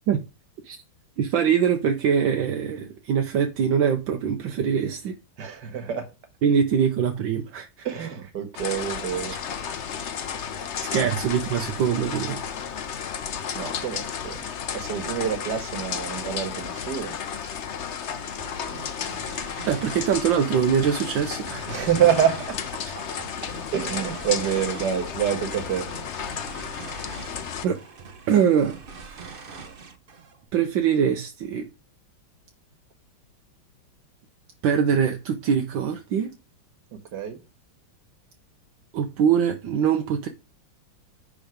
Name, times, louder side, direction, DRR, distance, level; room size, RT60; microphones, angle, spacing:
voice 1, 1.2-5.1 6.4-8.1 9.3-9.4 10.9-12.4 19.7-21.8 22.9-23.0 27.6-27.8 28.3-28.8 29.0-29.4 30.5-31.6 34.6-36.3 38.9-40.3, right 7 dB, 75° right, 1.6 m, -23 dB
voice 2, 5.4-6.1 7.8-9.7 11.0-11.1 13.5-14.4 14.7-17.1 21.7-23.0 23.7-25.9 37.1-37.4, right 9 dB, 60° right, 2.0 m, -27 dB
sound 1, 8.5-27.7, left 7 dB, 55° left, 0.8 m, -33 dB
sound 2, 18.2-30.4, right 5 dB, 45° right, 0.7 m, -43 dB
10.0 x 3.8 x 5.1 m
omnidirectional pair, 2.1 m